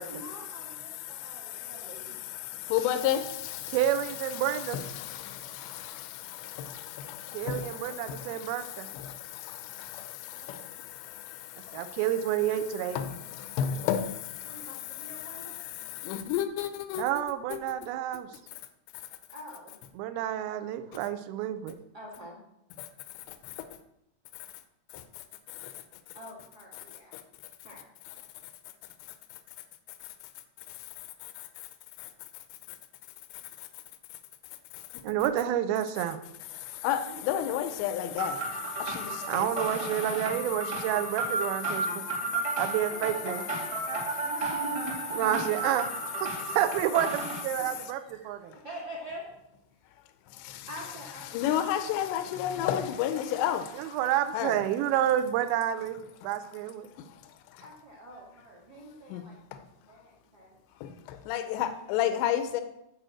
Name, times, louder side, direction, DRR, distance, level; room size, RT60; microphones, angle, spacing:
voice 1, 0.1-2.1 10.3-10.7 14.4-15.5 19.3-19.7 21.9-22.4 26.1-27.1 27.6-27.8 37.0-37.5 44.2-45.4 47.6-48.4 48.6-49.2 50.7-51.7 53.8-54.2 57.6-59.3 59.9-60.6, equal, 50° right, 1.1 m, -46 dB
voice 2, 1.0-3.8 4.7-12.0 13.0-14.7 15.2-15.3 15.8-17.0 22.8-22.9 24.9-25.0 25.5-25.7 27.1-27.2 31.4-31.5 32.0-32.1 36.6-39.5 42.1-42.4 43.7-44.3 45.1-45.2 50.4-50.7 51.3-53.9 54.3-54.6 59.1-59.2 59.5-59.6 60.8-62.6, left 10 dB, 85° left, 2.9 m, -33 dB
voice 3, 3.7-4.9 7.3-8.9 11.7-13.0 17.0-18.3 20.0-21.8 35.0-36.2 39.3-42.0 42.6-43.4 45.1-45.9 46.2-48.5 53.7-56.9, right 11 dB, 80° right, 2.3 m, -29 dB
sound 1, 38.2-47.4, right 3 dB, 15° right, 1.0 m, -33 dB
9.2 x 4.8 x 7.5 m
omnidirectional pair, 4.9 m